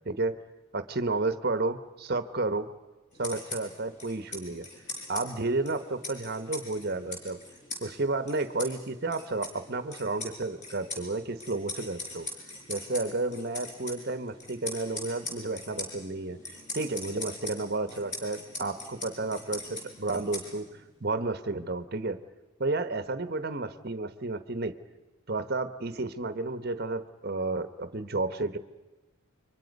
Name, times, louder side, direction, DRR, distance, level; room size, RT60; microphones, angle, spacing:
voice 1, 0.0-0.4 0.7-2.7 3.2-4.7 5.1-7.4 7.8-12.3 12.7-16.4 16.7-20.7 21.0-22.2 22.6-24.8 25.3-28.6, right 3 dB, 45° right, 11 dB, 1.0 m, -31 dB
sound 1, 3.1-20.9, left 2 dB, 35° left, 5.4 m, -42 dB
30.0 x 24.0 x 5.3 m, 1.1 s
head